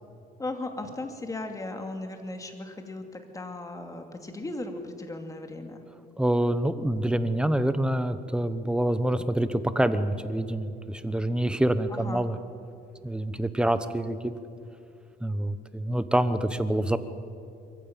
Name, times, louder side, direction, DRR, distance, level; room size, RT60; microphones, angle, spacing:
voice 1, 0.4-5.8 11.9-12.2, left 2 dB, 20° left, 5 dB, 2.6 m, -37 dB
voice 2, 6.2-12.4 13.0-14.3 15.2-17.0, right 1 dB, 5° right, 12 dB, 1.1 m, -26 dB
23.0 x 15.0 x 8.9 m, 2.5 s
cardioid pair, 110°, 17 cm